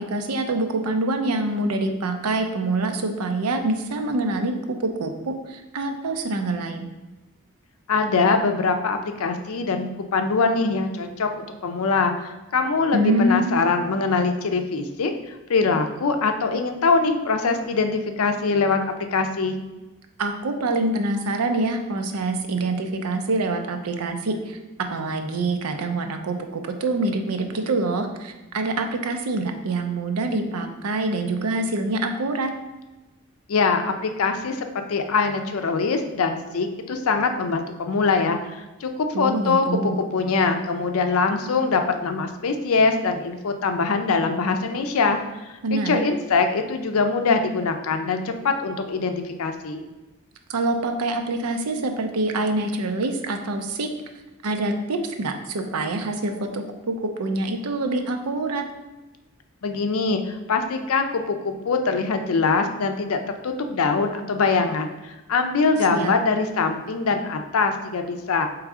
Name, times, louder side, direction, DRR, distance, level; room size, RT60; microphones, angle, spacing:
voice 1, 0.0-6.9 12.9-13.6 20.2-24.6 24.9-32.5 39.1-40.0 45.6-46.0 50.5-53.9 54.4-58.6 65.9-66.1, right 2 dB, 85° right, 6 dB, 0.5 m, -25 dB
voice 2, 7.9-19.6 33.5-49.8 59.6-68.5, left 4 dB, 70° left, 6 dB, 0.5 m, -23 dB
3.6 x 3.1 x 4.7 m, 1.1 s
head